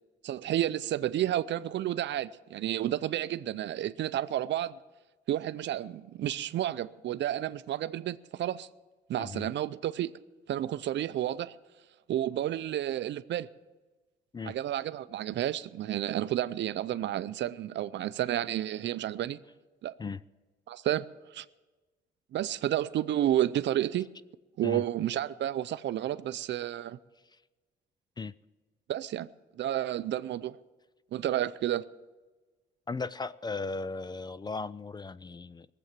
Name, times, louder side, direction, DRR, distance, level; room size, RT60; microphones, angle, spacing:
voice 1, 0.2-4.8 5.3-8.7 9.1-10.1 10.5-11.6 12.1-13.5 14.4-19.4 19.8-19.9 20.7-21.1 21.3-21.5 22.3-24.1 24.6-27.0 28.9-29.3 29.6-30.6 31.1-31.8, right 12 dB, 65° right, 0.5 m, -31 dB
voice 2, 32.9-35.7, left 4 dB, 20° left, 0.4 m, -36 dB
19.0 x 7.8 x 7.4 m
cardioid pair, 90°, 20 cm